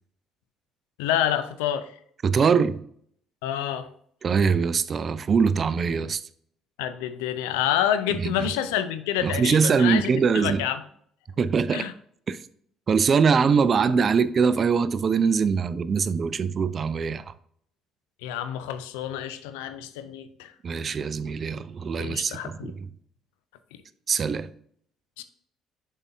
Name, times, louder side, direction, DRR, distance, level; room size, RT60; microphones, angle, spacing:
voice 1, 1.0-1.9 3.4-3.9 6.8-10.8 11.7-11.9 18.2-20.5 22.0-22.7 25.2-25.3, left 10 dB, 80° left, 0.5 m, -28 dB
voice 2, 2.2-2.8 4.2-6.2 8.2-8.5 9.2-10.6 11.4-11.9 12.3-12.4 12.9-17.3 20.6-22.9 24.1-24.5, right 5 dB, 45° right, 0.4 m, -23 dB
7.0 x 5.5 x 2.7 m
hypercardioid pair, 55°, 0 cm